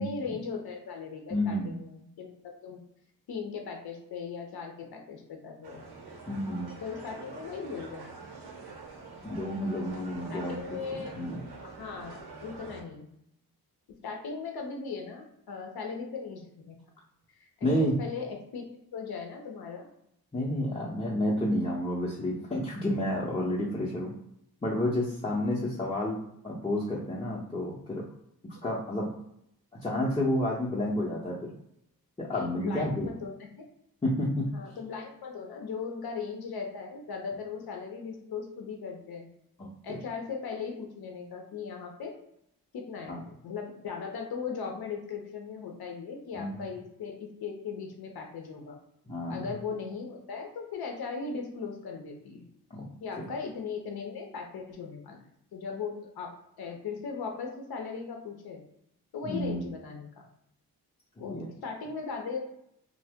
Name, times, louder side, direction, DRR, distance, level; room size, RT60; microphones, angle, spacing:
voice 1, 0.0-2.8 3.3-5.8 6.8-8.2 10.3-11.2 11.6-13.1 14.0-16.8 17.3-19.9 32.3-33.3 34.5-39.3 39.8-42.1 42.7-48.8 49.3-52.5 53.0-55.2 55.5-58.6 59.1-60.3 61.2-62.5, left 5 dB, 70° left, 2 dB, 0.6 m, -38 dB
voice 2, 1.3-1.7 6.3-6.7 9.2-10.6 10.9-11.4 17.6-18.0 20.3-24.1 24.6-28.1 28.6-29.1 29.8-31.5 32.2-33.1 34.0-34.5 39.6-40.0 43.1-43.2 46.3-46.6 49.1-49.5 52.7-52.9 53.2-53.3 59.2-59.6 61.3-61.5, left 1 dB, 15° left, -7 dB, 0.6 m, -30 dB
sound 1, 5.6-12.8, right 4 dB, 80° right, 0.8 m, -45 dB
2.7 x 2.0 x 3.4 m, 0.77 s
cardioid pair, 70°, 39 cm